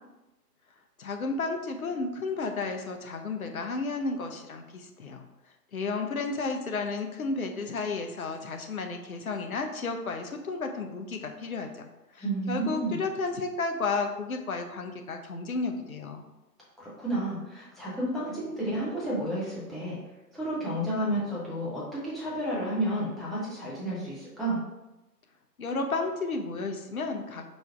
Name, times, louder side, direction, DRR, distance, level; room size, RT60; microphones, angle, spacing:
voice 1, 1.0-5.2 5.7-16.2 25.6-27.5, left 3 dB, 60° left, 5 dB, 0.7 m, -32 dB
voice 2, 12.2-13.0 16.8-20.0 20.3-24.6, right 1 dB, ahead, -9 dB, 0.4 m, -31 dB
4.4 x 2.4 x 4.3 m, 1.0 s
figure-of-eight pair, 140°, 49 cm